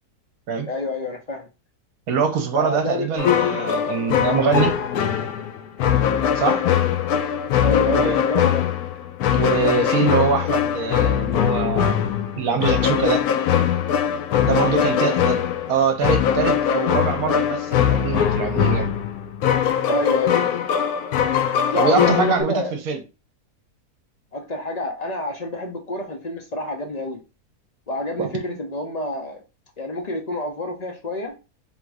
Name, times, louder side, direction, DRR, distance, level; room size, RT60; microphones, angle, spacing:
voice 1, 0.7-1.5 2.5-3.1 6.6-6.9 7.6-8.7 14.6-15.1 19.9-20.5 21.7-22.7 24.3-27.2 27.9-29.4 29.8-31.3, left 2 dB, 50° left, 0.4 m, -28 dB
voice 2, 2.1-4.8 6.3-6.6 7.9-8.2 9.3-12.0 12.4-13.3 14.4-18.9 21.7-23.0 28.2-28.3, right 5 dB, 70° right, 1.1 m, -23 dB
sound 1, 3.2-22.4, left 9 dB, 75° left, 1.0 m, -21 dB
3.6 x 2.6 x 4.6 m
omnidirectional pair, 1.7 m